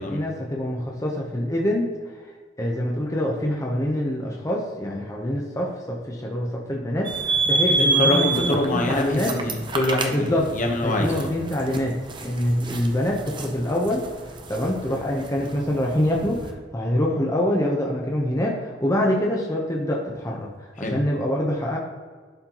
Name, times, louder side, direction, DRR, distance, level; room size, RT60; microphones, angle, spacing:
voice 1, 0.1-1.9 2.6-9.3 10.1-10.5 10.8-12.0 12.2-14.0 14.5-21.8, left 1 dB, 15° left, -2 dB, 0.8 m, -25 dB
sound 1, 7.0-16.5, right 3 dB, 25° right, 0.6 m, -28 dB
voice 2, 7.7-11.3 20.8-21.0, left 1 dB, 45° left, 1 dB, 1.0 m, -25 dB
11.5 x 4.3 x 2.9 m, 1.5 s
head